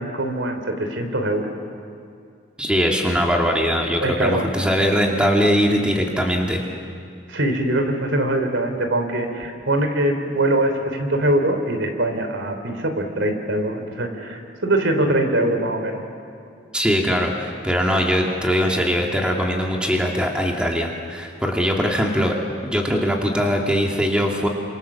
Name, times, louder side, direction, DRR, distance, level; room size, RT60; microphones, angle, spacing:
voice 1, 0.0-1.5 4.0-4.5 7.3-16.1, right 1 dB, 75° right, 6 dB, 3.3 m, -22 dB
voice 2, 2.6-6.6 16.7-22.3 22.6-24.5, equal, 5° right, 0 dB, 2.3 m, -21 dB
29.0 x 26.5 x 7.3 m, 2.4 s
head